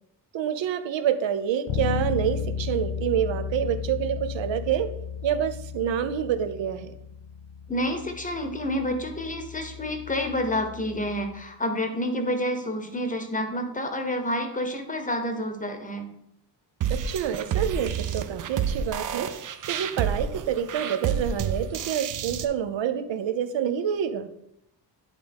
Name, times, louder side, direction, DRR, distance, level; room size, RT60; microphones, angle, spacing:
voice 1, 0.3-4.9 5.2-6.9 16.9-24.3, right 9 dB, 75° right, 10 dB, 0.8 m, -27 dB
Bass guitar, 1.7-11.5, left 6 dB, 75° left, 0.9 m, -34 dB
voice 2, 7.7-16.1, left 1 dB, 20° left, 6 dB, 0.8 m, -29 dB
sound 1, 16.8-22.4, right 8 dB, 45° right, 0.5 m, -29 dB
9.9 x 3.8 x 5.2 m, 0.76 s
wide cardioid pair, 175°, 45 cm